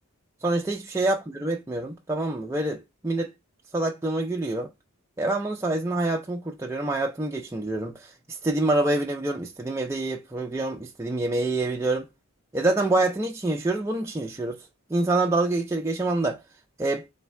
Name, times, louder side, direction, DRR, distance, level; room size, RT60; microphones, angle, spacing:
voice 1, 0.4-2.8 3.0-3.3 3.7-4.7 5.2-7.9 8.4-12.1 12.5-14.6 14.9-16.4 16.8-17.0, right 2 dB, 10° right, 0.3 m, -26 dB
3.5 x 3.2 x 3.1 m
head